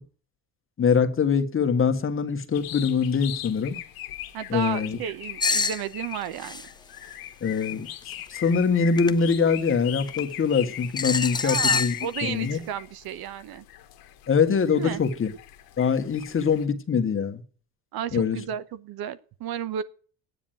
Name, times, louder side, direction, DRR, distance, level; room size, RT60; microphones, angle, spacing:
voice 1, 0.8-3.8 4.5-5.0 7.4-7.9 8.3-11.9 12.2-12.6 14.3-15.3 15.8-17.4 18.1-18.4, left 6 dB, 30° left, 1.6 m, -23 dB
sound 1, 2.5-16.6, left 13 dB, 60° left, 1.4 m, -40 dB
voice 2, 4.3-6.6 11.4-13.6 14.7-15.0 17.9-19.8, right 9 dB, 60° right, 1.0 m, -33 dB
sound 2, 5.4-5.8 6.4-6.7 8.1-8.4 9.0-9.1 10.1-10.2 11.0-12.0, left 4 dB, 10° left, 0.6 m, -25 dB
11.0 x 9.2 x 9.0 m
supercardioid pair, 95°, 42 cm